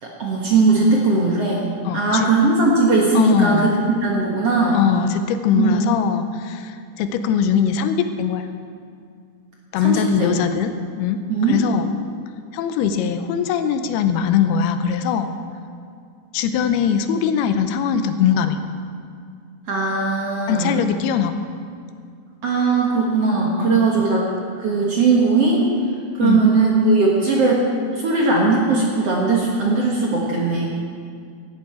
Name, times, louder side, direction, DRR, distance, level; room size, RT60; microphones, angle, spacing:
voice 1, 0.0-3.7 4.0-4.8 5.5-5.9 9.8-10.3 11.3-11.6 19.7-20.8 22.4-24.2 24.6-25.6 26.2-27.6 28.0-30.7, right 3 dB, 55° right, -3 dB, 1.8 m, -19 dB
voice 2, 1.9-2.3 3.1-3.7 4.7-8.5 9.7-11.2 11.5-11.9 12.5-15.3 16.3-18.6 20.5-21.4 23.6-24.1 26.2-26.5, left 7 dB, 85° left, 9 dB, 2.6 m, -21 dB
16.0 x 12.5 x 4.5 m, 2.3 s
omnidirectional pair, 4.6 m